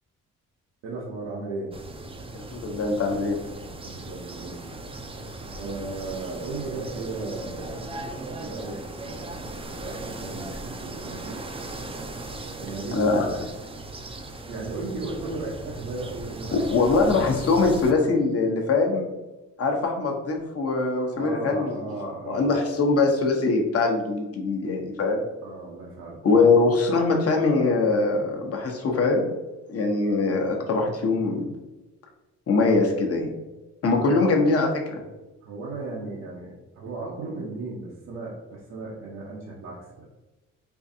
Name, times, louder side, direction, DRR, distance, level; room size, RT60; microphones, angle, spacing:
voice 1, 0.8-1.8 3.8-4.8 5.5-7.8 8.4-9.4 9.8-11.4 12.4-13.5 14.5-16.6 17.0-17.3 21.2-22.6 25.4-26.2 33.9-34.2 35.4-40.1, right 3 dB, 85° right, -5 dB, 0.8 m, -36 dB
sound 1, 1.7-17.9, right 2 dB, 20° right, 0.4 m, -38 dB
voice 2, 2.3-3.4 12.9-13.3 16.5-19.1 19.6-21.7 22.0-25.2 26.2-29.3 29.7-31.4 32.5-33.3 33.8-35.0, left 3 dB, 50° left, 2 dB, 0.9 m, -22 dB
4.5 x 2.5 x 2.7 m, 1.1 s
cardioid pair, 90°, 30 cm